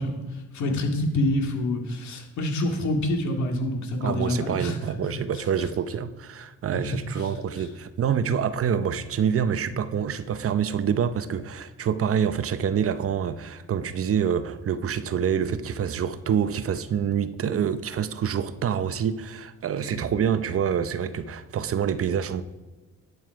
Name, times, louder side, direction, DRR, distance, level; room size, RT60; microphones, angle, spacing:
voice 1, 0.0-4.8 7.2-7.3 7.6-7.7 19.8-20.0, left 1 dB, 70° left, 2.2 m, -27 dB
voice 2, 4.0-22.4, right 8 dB, 50° right, 0.7 m, -26 dB
11.0 x 7.0 x 4.7 m
cardioid pair, 90°, 30 cm